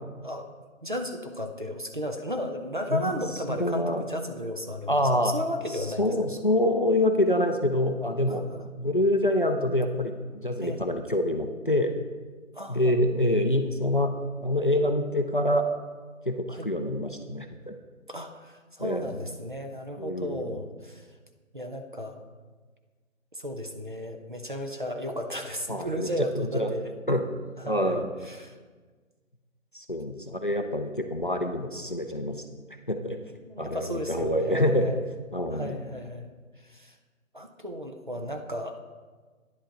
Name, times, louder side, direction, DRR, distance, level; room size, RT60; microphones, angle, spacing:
voice 1, 0.8-6.0 8.3-8.6 10.6-10.9 12.5-12.9 16.5-16.7 18.1-21.1 21.5-22.2 23.3-26.9 27.6-28.6 33.4-35.0 35.5-36.3 36.6-37.0 37.3-38.8, equal, 40° right, 5 dB, 0.5 m, -34 dB
voice 2, 3.5-4.1 4.9-5.3 6.0-8.4 8.8-11.9 12.7-14.1 14.4-15.6 16.3-17.8 18.8-19.2 20.0-20.6 25.7-26.1 26.3-26.7 27.1-27.2 27.6-28.1 29.7-32.4 32.9-33.2 33.6-34.9 35.3-35.8, left 1 dB, 40° left, 6 dB, 0.4 m, -26 dB
10.0 x 8.0 x 3.8 m, 1.4 s
figure-of-eight pair, 170°, 41 cm